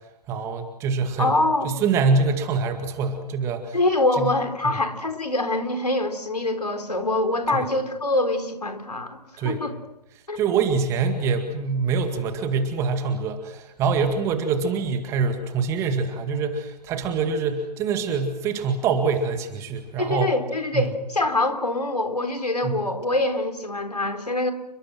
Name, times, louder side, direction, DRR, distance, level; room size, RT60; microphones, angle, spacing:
voice 1, 0.3-1.3 1.6-3.8 4.2-4.3 4.6-4.8 7.5-7.7 9.4-9.6 10.4-20.3 20.7-20.9 22.6-22.8, right 5 dB, 15° right, 7 dB, 2.0 m, -25 dB
voice 2, 1.2-1.7 3.7-9.7 10.3-10.4 20.0-24.5, left 2 dB, 70° left, 6 dB, 3.9 m, -24 dB
29.5 x 23.5 x 6.2 m, 0.90 s
figure-of-eight pair, 140°, 21 cm